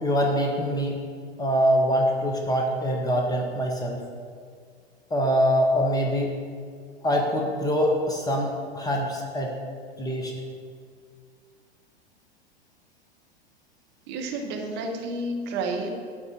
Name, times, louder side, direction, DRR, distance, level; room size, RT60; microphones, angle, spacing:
voice 1, 0.0-1.0 1.4-4.0 5.1-6.3 7.0-9.5 10.0-10.3, equal, 10° left, 0 dB, 1.2 m, -24 dB
voice 2, 14.1-16.0, right 2 dB, 35° right, 2 dB, 1.4 m, -30 dB
12.0 x 4.2 x 7.6 m, 2.1 s
figure-of-eight pair, 95°, 32 cm